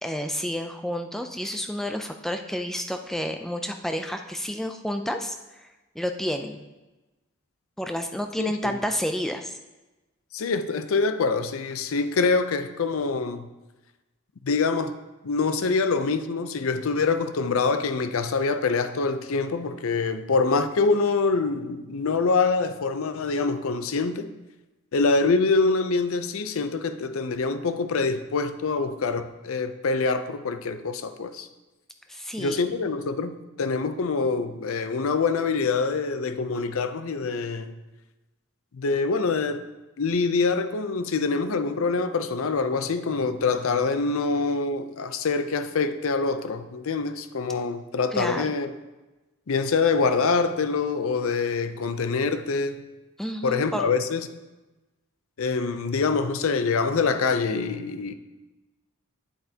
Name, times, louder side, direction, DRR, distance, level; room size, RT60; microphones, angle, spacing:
voice 1, 0.0-5.7 6.0-6.6 7.8-9.6 32.1-32.9 48.1-48.5 53.2-53.9, equal, ahead, 0.3 m, -30 dB
voice 2, 8.4-8.7 10.3-13.5 14.4-14.9 15.2-24.3 24.9-31.5 32.4-37.8 38.7-39.6 40.0-48.7 49.5-52.8 53.4-54.3 55.4-58.1, left 4 dB, 75° left, 0.5 m, -25 dB
9.1 x 7.6 x 2.8 m
head